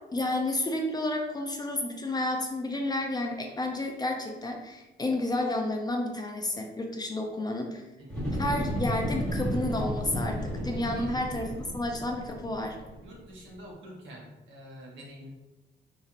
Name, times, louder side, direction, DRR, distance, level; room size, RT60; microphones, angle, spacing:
voice 1, 0.1-7.8 8.4-12.8, left 1 dB, 20° left, 2 dB, 0.4 m, -31 dB
voice 2, 8.0-8.6 10.7-11.1 13.0-15.3, equal, 70° right, -3 dB, 1.0 m, -47 dB
sound 1, 8.1-13.2 13.5-13.6, equal, 5° left, 1.4 m, -32 dB
3.0 x 2.5 x 2.5 m, 1.1 s
cardioid pair, 90°, 20 cm